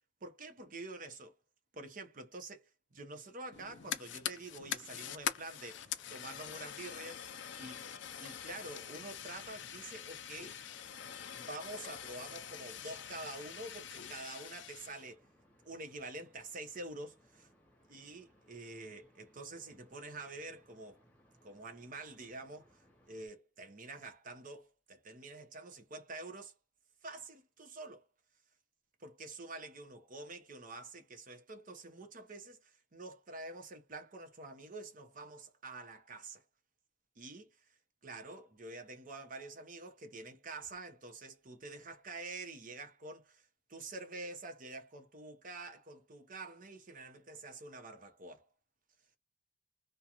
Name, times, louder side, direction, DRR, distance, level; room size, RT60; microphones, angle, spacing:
voice 1, 0.2-1.4 1.7-7.3 7.6-7.8 8.2-10.6 11.4-15.2 15.6-17.5 17.9-21.0 21.4-26.5 27.0-28.1 29.0-36.4 37.2-37.6 38.0-48.5, right 2 dB, 45° right, 0.7 m, -47 dB
Fire, 3.5-15.1, left 9 dB, 70° left, 0.5 m, -44 dB
sound 1, 4.3-23.3, equal, 5° left, 0.8 m, -67 dB
2.4 x 2.2 x 2.8 m
head